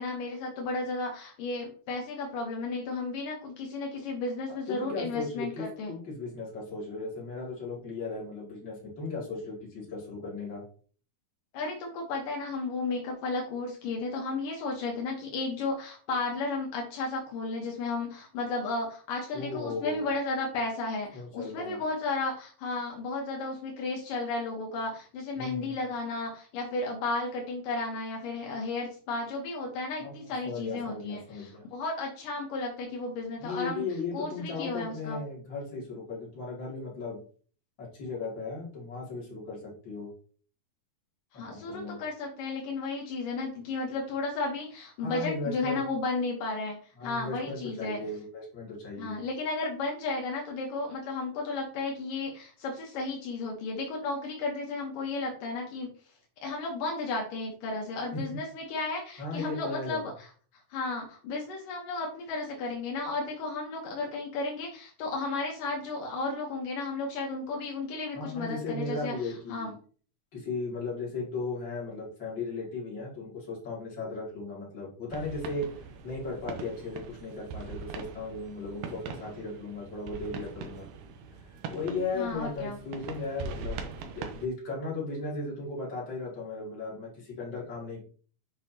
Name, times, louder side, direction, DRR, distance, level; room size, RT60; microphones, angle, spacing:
voice 1, 0.0-5.9 11.5-33.9 34.1-35.2 41.3-48.0 49.0-55.9 56.4-60.3 60.7-69.7 82.1-82.8, left 3 dB, 75° left, 0 dB, 2.8 m, -33 dB
voice 2, 4.7-10.6 19.3-20.0 21.1-21.8 25.4-25.7 30.0-30.1 30.4-31.6 33.4-37.2 37.8-40.1 41.5-42.0 45.0-45.8 47.0-49.2 58.1-58.2 59.2-60.1 68.1-69.7 70.3-75.7 76.0-80.8 81.7-88.0, left 3 dB, 35° left, -4 dB, 3.1 m, -36 dB
sound 1, 75.1-84.5, right 5 dB, 90° right, 2.6 m, -42 dB
8.0 x 5.3 x 2.8 m, 0.42 s
omnidirectional pair, 3.9 m